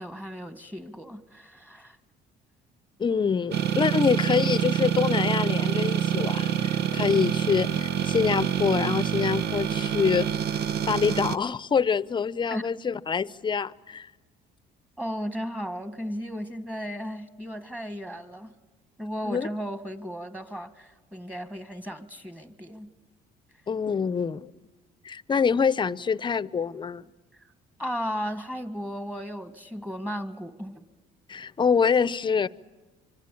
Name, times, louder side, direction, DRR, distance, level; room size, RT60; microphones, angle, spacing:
voice 1, 0.0-2.0 12.5-12.7 15.0-18.5 19.0-22.9 27.3-27.5 27.8-30.8, equal, 10° right, 1.8 m, -35 dB
voice 2, 3.0-10.3 10.9-14.1 19.2-19.5 23.7-24.5 25.0-27.1 31.3-32.5, left 6 dB, 30° left, 0.8 m, -25 dB
sound 1, 3.5-11.4, right 9 dB, 75° right, 1.0 m, -26 dB
25.5 x 25.5 x 8.6 m
cardioid pair, 110°, 17 cm